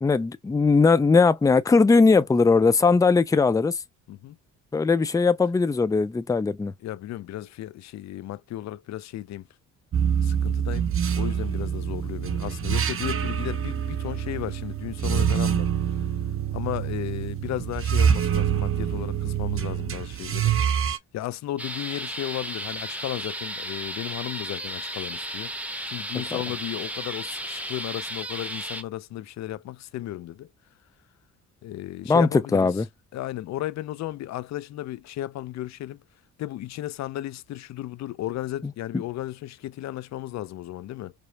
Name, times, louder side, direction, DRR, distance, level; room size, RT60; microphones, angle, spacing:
voice 1, 0.0-3.8 4.7-6.7 32.1-32.8, left 4 dB, 10° left, 0.4 m, -19 dB
voice 2, 6.8-9.5 10.2-10.9 11.2-16.1 16.5-20.5 21.1-25.5 25.9-30.5 31.6-32.7 33.1-36.0 36.4-41.1, left 14 dB, 65° left, 0.5 m, -34 dB
sound 1, 9.9-21.0, right 8 dB, 45° right, 0.8 m, -26 dB
sound 2, 21.6-28.8, right 1 dB, 5° right, 0.8 m, -34 dB
5.1 x 2.0 x 2.8 m
cardioid pair, 90°, 30 cm